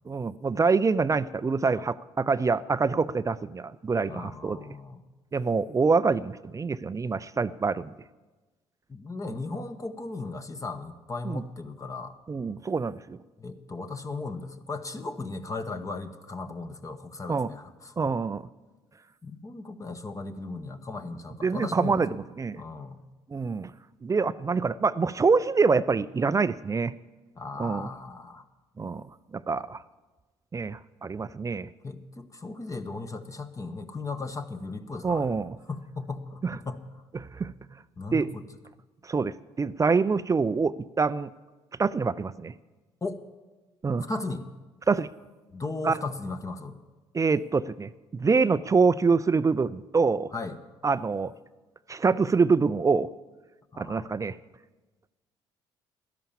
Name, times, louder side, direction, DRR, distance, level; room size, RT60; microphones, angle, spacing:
voice 1, 0.1-4.7 5.3-7.9 9.3-9.4 11.2-11.4 12.3-13.2 17.3-17.5 18.0-18.5 21.4-22.6 23.3-23.7 24.0-26.9 27.6-27.9 28.8-29.0 29.3-29.8 30.5-31.7 35.0-35.6 36.4-36.6 37.1-37.5 38.1-38.3 39.0-41.3 41.8-42.5 43.8-44.1 44.9-45.1 45.8-46.0 47.1-50.3 50.8-51.3 51.9-53.1 53.8-54.4, right 4 dB, 25° right, 16 dB, 0.5 m, -25 dB
voice 2, 4.1-5.0 8.9-12.1 13.4-17.9 19.2-22.0 22.6-23.0 27.4-28.4 31.8-35.3 35.7-36.8 38.0-38.4 43.0-43.2 44.1-44.5 45.5-46.8 50.3-50.6 53.7-54.1, left 3 dB, 25° left, 8 dB, 1.1 m, -36 dB
12.5 x 11.0 x 7.3 m, 1.2 s
hypercardioid pair, 55°, 13 cm